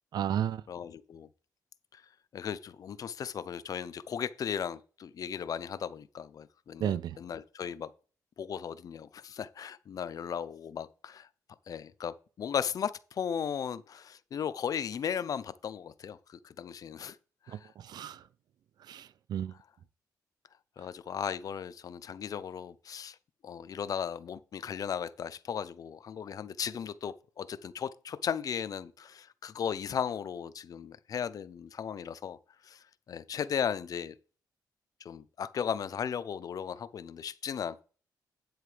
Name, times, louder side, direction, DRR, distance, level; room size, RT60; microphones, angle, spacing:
voice 1, 0.1-0.6 6.8-7.2 17.5-18.2 18.9-19.5, right 10 dB, 75° right, 0.5 m, -33 dB
voice 2, 0.7-1.3 1.9-2.0 2.3-7.9 8.4-11.3 11.7-17.2 17.5-17.7 20.8-23.2 23.4-32.4 32.6-34.1 35.0-37.8, left 8 dB, 55° left, 0.6 m, -36 dB
9.6 x 7.7 x 3.3 m
cardioid pair, 105°, 7 cm